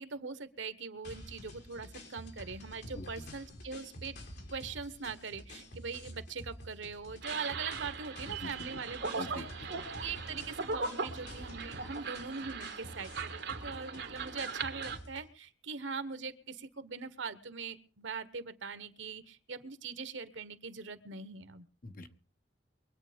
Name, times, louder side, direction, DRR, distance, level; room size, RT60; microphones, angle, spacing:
voice 1, 0.0-4.2 4.5-9.5 9.9-21.7, right 5 dB, 80° right, 13 dB, 1.2 m, -42 dB
sound 1, 1.0-15.3, equal, 65° left, 5.4 m, -49 dB
sound 2, 7.2-15.0, right 4 dB, 65° right, 1.9 m, -39 dB
voice 2, 8.2-8.8 9.2-9.7 21.8-22.2, left 1 dB, 50° left, 7 dB, 1.4 m, -45 dB
24.0 x 8.5 x 5.1 m, 0.39 s
head